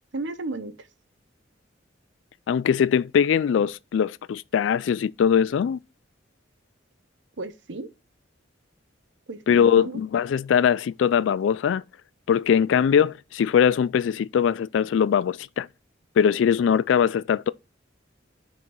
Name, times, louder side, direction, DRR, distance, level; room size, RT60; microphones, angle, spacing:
voice 1, 0.1-0.9 7.4-7.9 9.3-10.0, right 2 dB, 65° right, 0.9 m, -34 dB
voice 2, 2.5-5.8 9.5-11.8 12.3-15.7 16.2-17.5, left 8 dB, 70° left, 0.3 m, -21 dB
5.8 x 4.7 x 5.3 m
head